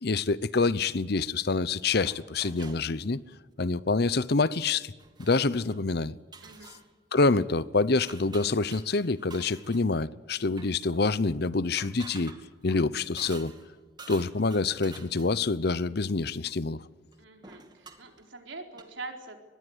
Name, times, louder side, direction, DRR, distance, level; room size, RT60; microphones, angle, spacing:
voice 1, 0.0-3.2 3.6-4.9 5.2-6.1 7.1-12.4 12.6-13.5 14.1-16.8, left 3 dB, 55° left, 0.8 m, -26 dB
sound 1, 1.1-1.3 1.9-2.9 4.0-4.3 4.6-4.7 5.0-5.8 6.3-6.9 7.3-7.4 8.0-9.9 10.5-10.7 11.6-13.7 14.0-15.5 17.1-17.2 17.4-18.2 18.7-18.8, right 4 dB, 25° right, 2.5 m, -49 dB
voice 2, 6.4-6.7 17.2-19.4, right 3 dB, 80° right, 4.1 m, -43 dB
25.0 x 21.0 x 8.0 m
head